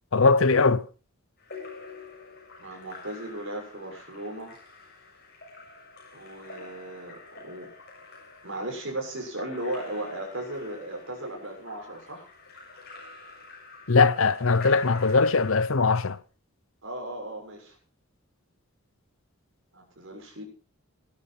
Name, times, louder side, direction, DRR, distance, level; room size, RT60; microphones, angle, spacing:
voice 1, 0.1-0.8 13.9-16.2, left 4 dB, 70° left, 0.8 m, -21 dB
Splash splatter / Drip / Trickle dribble, 1.4-15.7, left 3 dB, 45° left, 6.9 m, -47 dB
voice 2, 2.6-4.6 6.1-7.7 8.4-12.3 16.8-17.8 19.7-20.4, right 1 dB, 60° right, 6.9 m, -36 dB
18.0 x 12.0 x 4.6 m
head